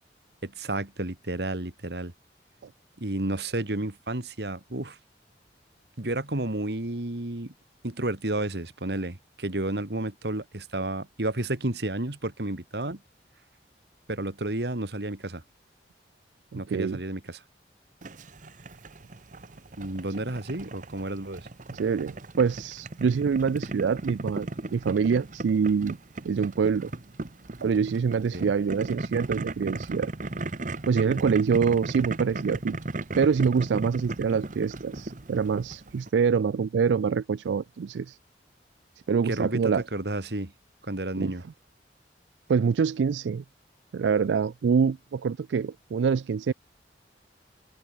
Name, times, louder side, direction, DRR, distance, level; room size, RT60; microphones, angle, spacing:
voice 1, 0.4-2.1 3.0-5.0 6.0-7.5 7.8-13.0 14.1-15.4 16.5-17.4 19.8-21.5 28.3-28.5 39.2-40.5 40.8-41.4, right 1 dB, 65° right, 2.0 m, -31 dB
voice 2, 16.5-17.0 21.7-26.0 26.2-26.9 27.6-30.1 30.9-32.8 33.2-38.2 39.1-39.8 41.2-41.3 42.5-43.4 43.9-46.5, right 6 dB, 85° right, 0.4 m, -25 dB
Boiling, 18.0-36.1, right 2 dB, 45° right, 1.0 m, -36 dB
head